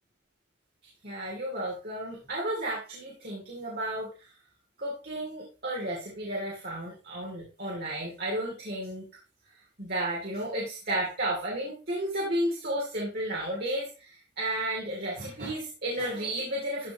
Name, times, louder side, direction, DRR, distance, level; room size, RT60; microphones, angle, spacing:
voice 1, 1.0-4.3 4.8-9.0 9.8-16.9, right 1 dB, 60° right, -4 dB, 3.1 m, -33 dB
14.0 x 5.8 x 3.1 m, 0.33 s
head